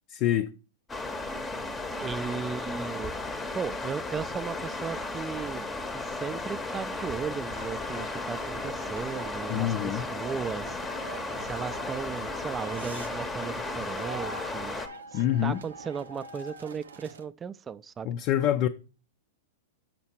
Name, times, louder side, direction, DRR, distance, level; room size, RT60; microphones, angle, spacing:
voice 1, 0.1-0.5 9.5-10.1 15.1-15.6 18.0-18.7, left 11 dB, 45° left, 0.4 m, -26 dB
sound 1, 0.9-14.9, left 2 dB, 15° left, 0.8 m, -35 dB
voice 2, 2.0-3.2 3.5-5.6 5.9-10.8 11.4-14.8 15.1-18.1, right 6 dB, 20° right, 0.4 m, -36 dB
sound 2, 7.5-17.3, right 4 dB, 85° right, 0.6 m, -45 dB
6.4 x 5.9 x 4.3 m
hypercardioid pair, 110°, 0 cm